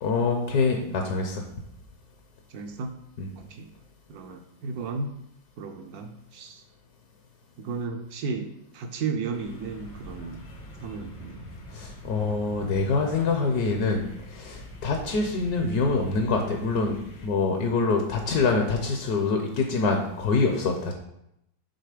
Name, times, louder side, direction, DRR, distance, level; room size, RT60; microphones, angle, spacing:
voice 1, 0.0-1.4 3.2-3.3 11.7-20.9, left 4 dB, 65° left, 3 dB, 1.1 m, -25 dB
voice 2, 2.5-2.9 3.4-3.7 4.1-5.1 5.6-6.6 7.6-10.4 10.8-11.4, right 4 dB, 75° right, 6 dB, 0.8 m, -34 dB
sound 1, 9.3-17.3, left 1 dB, 85° left, 2.2 m, -43 dB
6.7 x 3.9 x 4.9 m, 0.82 s
omnidirectional pair, 2.2 m